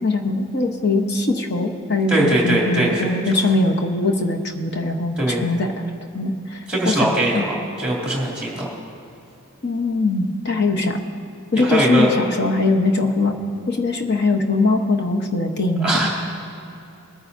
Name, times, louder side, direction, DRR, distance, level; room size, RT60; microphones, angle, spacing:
voice 1, 0.0-5.7 6.1-7.4 9.6-11.0 11.5-13.3 13.7-15.9, left 2 dB, 50° left, 3 dB, 1.0 m, -21 dB
voice 2, 2.1-3.1 3.3-3.5 5.2-5.4 6.7-8.6 11.5-12.1 15.8-16.1, right 1 dB, 5° right, -4 dB, 2.6 m, -21 dB
21.0 x 9.5 x 2.7 m, 2.7 s
head